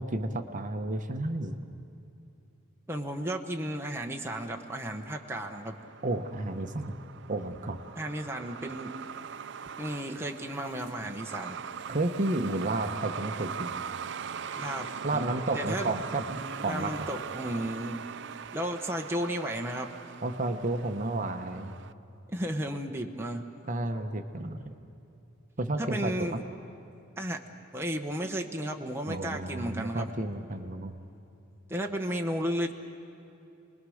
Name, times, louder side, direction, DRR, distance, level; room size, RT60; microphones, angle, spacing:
voice 1, 0.0-1.6 6.0-6.9 7.3-7.8 11.9-13.7 15.0-17.1 20.2-21.7 23.7-24.7 25.6-26.4 29.1-30.9, right 2 dB, 40° right, 7 dB, 1.0 m, -32 dB
voice 2, 2.9-5.7 8.0-8.9 9.8-11.6 14.5-15.9 16.6-18.0 18.5-19.9 22.3-23.5 25.8-26.4 27.2-27.4 27.7-30.1 31.7-32.7, right 1 dB, 10° right, 2 dB, 1.0 m, -33 dB
Truck, 4.5-21.9, right 7 dB, 60° right, 0.5 m, -41 dB
28.5 x 21.0 x 6.4 m, 2.8 s
head